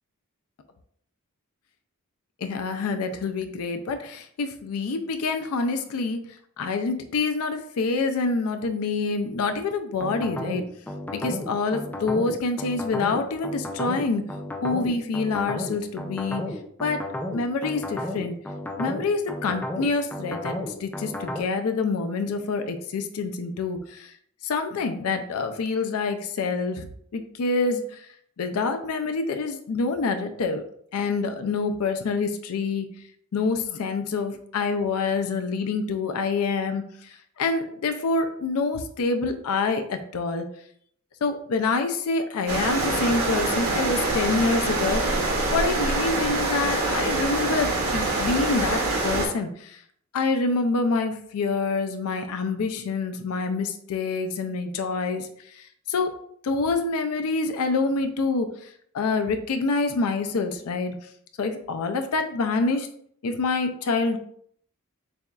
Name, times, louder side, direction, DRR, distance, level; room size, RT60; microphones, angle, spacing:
voice 1, 2.4-6.2 6.6-10.7 11.1-14.3 14.6-16.5 16.8-17.0 17.3-18.4 18.8-24.1 24.4-26.9 27.1-28.0 28.4-30.6 30.9-32.9 33.3-40.5 41.2-45.1 45.5-49.8 50.1-55.3 55.6-56.1 56.4-58.5 58.9-61.0 61.4-62.9 63.2-64.2, left 4 dB, 75° left, 7 dB, 0.4 m, -26 dB
sound 1, 10.0-21.4, left 1 dB, 10° left, 0.3 m, -33 dB
sound 2, 42.5-49.3, right 2 dB, 90° right, 1.3 m, -25 dB
6.7 x 2.4 x 2.3 m, 0.65 s
head